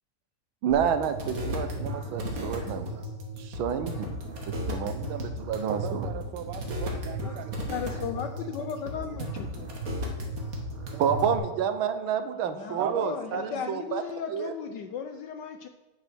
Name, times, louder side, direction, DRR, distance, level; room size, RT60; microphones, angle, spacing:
voice 1, 0.6-3.1 3.4-4.1 4.7-6.1 11.0-13.4 13.7-14.0 14.3-14.5, right 8 dB, 70° right, 10 dB, 1.6 m, -29 dB
sound 1, 0.7-11.4, equal, 40° right, 2.0 m, -35 dB
voice 2, 5.7-7.8 10.9-11.3 12.8-13.1 13.3-13.7, right 10 dB, 90° right, 11 dB, 1.6 m, -37 dB
voice 3, 7.7-9.7 12.4-15.7, left 7 dB, 70° left, 8 dB, 1.1 m, -36 dB
9.2 x 6.9 x 6.0 m, 1.1 s
omnidirectional pair, 2.4 m